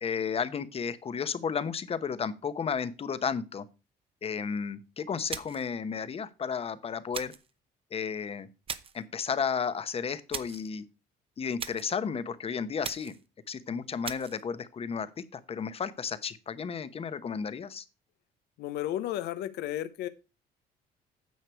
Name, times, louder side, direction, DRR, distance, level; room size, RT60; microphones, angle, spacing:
voice 1, 0.0-3.6 4.2-7.3 7.9-8.5 8.9-10.8 11.4-13.2 13.5-17.8, left 6 dB, 35° left, 0.9 m, -33 dB
sound 1, 5.3-5.7 7.1-7.5 8.7-9.0 10.3-10.7 11.6-12.0 12.8-13.3 14.0-14.4, right 6 dB, 35° right, 0.8 m, -39 dB
voice 2, 18.6-20.1, left 13 dB, 80° left, 0.7 m, -33 dB
9.5 x 6.6 x 4.5 m
cardioid pair, 110°, 17 cm